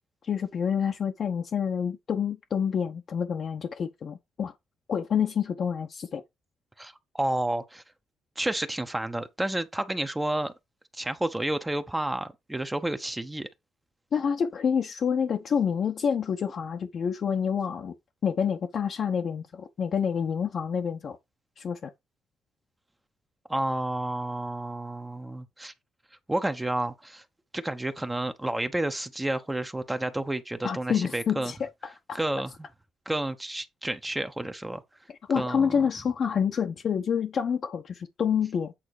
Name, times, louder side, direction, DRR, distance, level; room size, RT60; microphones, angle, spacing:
voice 1, 0.2-4.5 4.9-6.2 14.1-17.9 18.2-21.2 21.6-21.9 30.6-31.7 32.1-32.2 35.3-38.7, left 7 dB, 55° left, 0.9 m, -28 dB
voice 2, 6.8-7.8 8.4-10.5 10.9-13.5 23.5-25.7 26.3-27.2 27.5-31.5 32.1-32.5 33.1-34.8 35.3-35.8, right 1 dB, 10° right, 1.0 m, -30 dB
8.6 x 3.7 x 4.9 m
cardioid pair, 90°, 0 cm